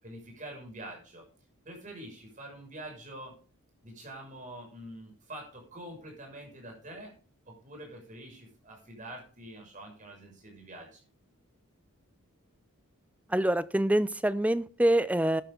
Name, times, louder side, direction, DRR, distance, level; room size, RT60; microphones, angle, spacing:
voice 1, 0.0-1.2 1.6-3.3 3.8-7.1 7.5-11.0, right 1 dB, 35° right, 1 dB, 6.5 m, -45 dB
voice 2, 13.3-15.4, right 1 dB, 5° right, 16 dB, 0.4 m, -25 dB
13.0 x 10.5 x 3.9 m, 0.39 s
head